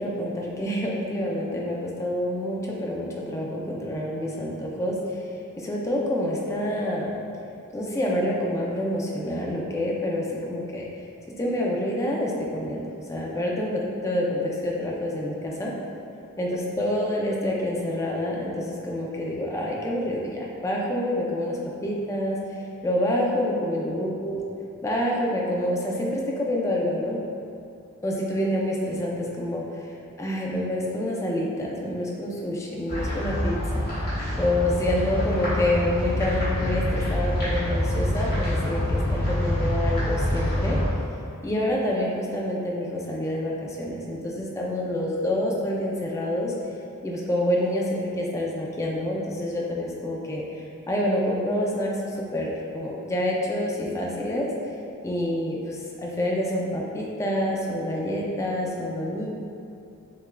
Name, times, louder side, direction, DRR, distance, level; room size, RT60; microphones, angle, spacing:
voice 1, 0.0-5.1 5.6-7.1 7.7-10.9 11.4-12.8 13.1-15.7 16.4-22.4 22.8-24.4 24.8-27.2 28.0-29.6 30.2-33.6 34.4-40.8 41.4-46.5 47.0-50.4 50.9-54.5 55.0-59.4, left 1 dB, 15° left, -3 dB, 0.4 m, -27 dB
sound 1, 32.9-40.9, left 1 dB, 45° left, 1.4 m, -26 dB
6.1 x 2.4 x 2.2 m, 2.6 s
head